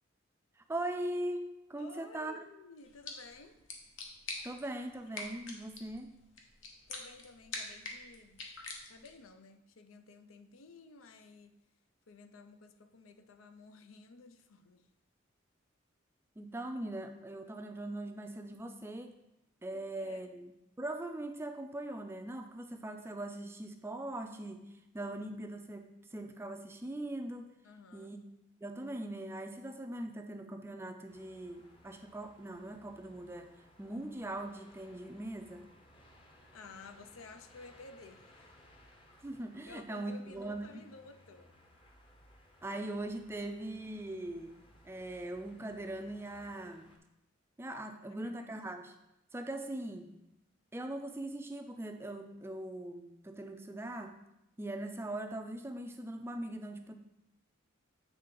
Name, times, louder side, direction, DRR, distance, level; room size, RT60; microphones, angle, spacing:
voice 1, 0.6-2.3 4.4-6.1 16.4-19.2 19.6-20.5 20.8-27.5 27.9-28.2 28.6-35.7 39.2-40.8 42.6-46.9 47.6-49.0 49.3-50.1 50.7-54.2 54.6-56.9, right 1 dB, 10° right, 6 dB, 0.3 m, -41 dB
voice 2, 1.8-3.6 6.9-8.4 8.9-11.6 12.1-14.9 19.7-20.2 27.6-28.2 36.5-38.6 39.2-39.3 39.6-41.5 48.1-48.5, left 3 dB, 90° left, 9 dB, 0.5 m, -54 dB
sound 1, 2.8-9.3, left 3 dB, 70° left, 1.0 m, -46 dB
sound 2, 31.1-47.0, left 1 dB, 25° left, 0.7 m, -62 dB
8.0 x 3.3 x 3.7 m, 0.90 s
head